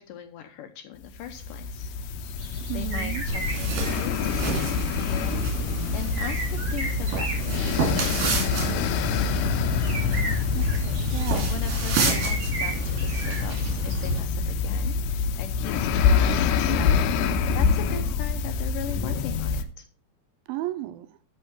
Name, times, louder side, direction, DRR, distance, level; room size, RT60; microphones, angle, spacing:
voice 1, 0.0-1.9 2.7-7.5 7.8-10.2 11.3-19.9, left 9 dB, 75° left, 2.2 m, -40 dB
sound 1, 1.1-19.6, left 5 dB, 90° left, 2.7 m, -26 dB
sound 2, 2.2-3.9 6.1-8.4 9.8-11.6 12.1-14.1, right 2 dB, 35° right, 3.1 m, -35 dB
voice 2, 2.7-3.2 10.6-11.5 20.5-21.1, right 15 dB, 80° right, 2.3 m, -33 dB
sound 3, 3.3-14.2, right 4 dB, 60° right, 4.0 m, -31 dB
12.0 x 5.6 x 4.5 m
omnidirectional pair, 4.5 m